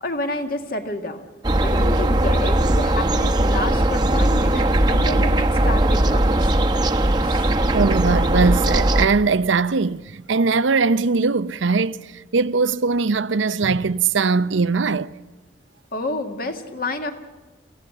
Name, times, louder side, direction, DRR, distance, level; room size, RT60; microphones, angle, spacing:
voice 1, 0.0-1.2 1.6-6.4 7.2-7.5 15.9-17.1, left 2 dB, 50° left, 2.0 m, -29 dB
sound 1, 1.4-9.1, right 1 dB, 25° right, 0.9 m, -19 dB
voice 2, 7.7-15.1, right 4 dB, 90° right, 0.7 m, -20 dB
26.5 x 15.5 x 7.8 m
head